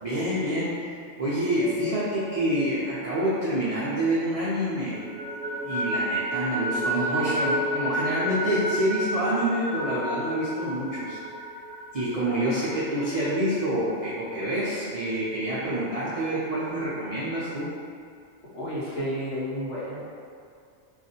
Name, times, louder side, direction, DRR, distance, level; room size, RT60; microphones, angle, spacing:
voice 1, 0.0-5.0 5.6-11.2 11.9-17.7, right 1 dB, 55° right, -10 dB, 0.4 m, -27 dB
sound 1, 1.4-4.3 4.6-14.1, equal, 90° right, 1.0 m, -32 dB
voice 2, 18.5-20.0, equal, 70° left, -8 dB, 1.2 m, -31 dB
2.5 x 2.4 x 4.0 m, 2.3 s
omnidirectional pair, 1.3 m